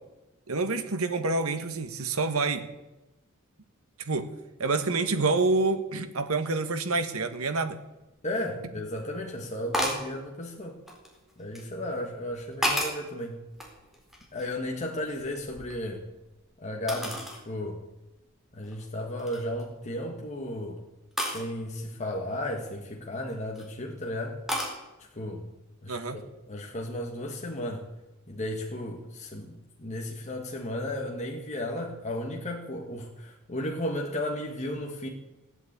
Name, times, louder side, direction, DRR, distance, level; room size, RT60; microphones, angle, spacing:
voice 1, 0.5-2.7 4.0-4.3 4.6-7.8 25.9-26.2, right 3 dB, 80° right, 9 dB, 1.5 m, -27 dB
voice 2, 8.2-10.8 11.4-13.4 14.3-16.0 16.6-17.8 18.5-20.8 21.2-24.4 25.1-25.5 25.8-27.9 28.3-35.1, left 1 dB, 35° left, 0 dB, 1.7 m, -34 dB
sound 1, 9.7-10.1 10.9-11.7 12.3-13.1 13.6-14.6 14.9-16.2 16.9-17.4 17.9-18.0 18.6-18.9 19.2-19.6 21.2-21.4 23.1-23.6 24.5-24.8, equal, ahead, 4.0 m, -32 dB
16.5 x 9.2 x 8.7 m, 1.0 s
head